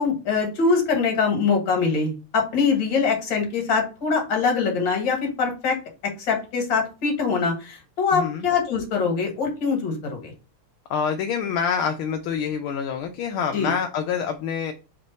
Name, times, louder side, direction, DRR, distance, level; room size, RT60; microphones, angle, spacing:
voice 1, 0.0-5.8 6.2-10.3 13.5-13.7, left 5 dB, 60° left, 2 dB, 2.0 m, -23 dB
voice 2, 8.1-8.5 10.9-14.7, left 7 dB, 80° left, 5 dB, 1.4 m, -26 dB
3.7 x 3.3 x 3.9 m, 0.32 s
omnidirectional pair, 2.4 m